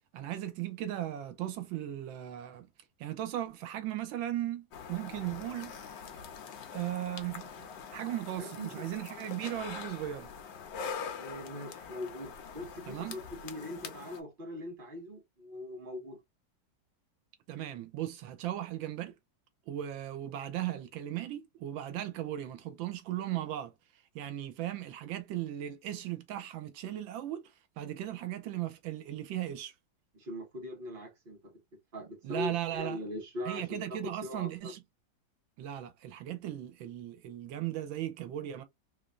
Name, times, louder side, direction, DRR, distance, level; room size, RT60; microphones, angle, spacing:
voice 1, 0.1-2.7 3.0-5.8 6.7-10.3 12.9-13.2 17.5-19.1 19.7-23.7 24.1-29.7 32.2-33.0 33.5-34.8 35.6-38.6, right 12 dB, 90° right, 1.4 m, -37 dB
sound 1, 4.7-14.2, left 6 dB, 80° left, 1.4 m, -44 dB
voice 2, 8.4-8.8 11.2-16.2 30.1-31.5 31.9-34.7, left 1 dB, 30° right, 1.4 m, -41 dB
3.5 x 3.1 x 2.4 m
omnidirectional pair, 2.1 m